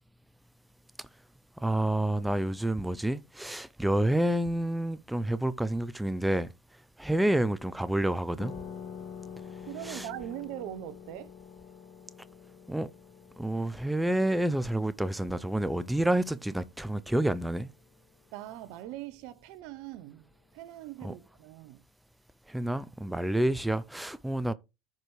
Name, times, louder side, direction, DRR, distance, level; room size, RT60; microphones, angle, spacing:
voice 1, 1.6-6.5 7.0-8.5 9.8-10.1 12.7-12.9 13.4-17.7 21.0-21.1 22.5-24.5, right 1 dB, 5° right, 0.5 m, -29 dB
sound 1, 8.4-17.6, left 7 dB, 55° left, 2.5 m, -47 dB
voice 2, 9.7-11.3 18.3-21.8, right 14 dB, 65° right, 0.8 m, -41 dB
14.5 x 4.9 x 3.2 m
hypercardioid pair, 90°, 0 cm